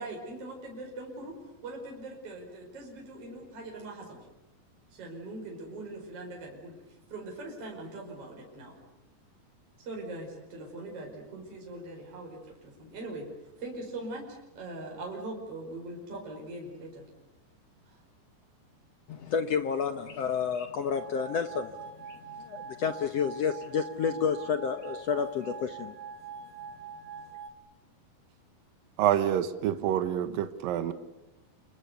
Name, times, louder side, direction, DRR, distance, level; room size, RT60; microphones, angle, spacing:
voice 1, 0.0-1.3 1.6-4.2 4.9-6.8 7.1-8.8 9.8-13.3 13.6-17.1 17.9-18.0, right 2 dB, 40° right, 6.0 m, -41 dB
voice 2, 19.1-21.7 22.1-25.9, left 6 dB, 75° left, 1.5 m, -30 dB
sound 1, 20.9-27.5, right 6 dB, 55° right, 2.3 m, -44 dB
voice 3, 29.0-30.9, right 10 dB, 70° right, 2.9 m, -27 dB
30.0 x 27.5 x 6.9 m
omnidirectional pair, 4.4 m